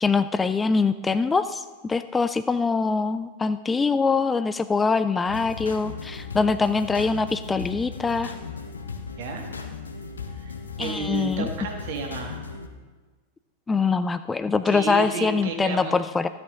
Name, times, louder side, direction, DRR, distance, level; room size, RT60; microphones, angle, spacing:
voice 1, 0.0-8.3 10.8-11.5 13.7-16.3, left 4 dB, 15° left, 12 dB, 0.3 m, -23 dB
sound 1, 5.3-12.7, left 5 dB, 75° left, 0.9 m, -37 dB
voice 2, 10.8-12.4 14.6-15.9, right 4 dB, 50° right, 3 dB, 1.7 m, -32 dB
13.0 x 8.5 x 3.8 m, 1.3 s
figure-of-eight pair, 90°, 0 cm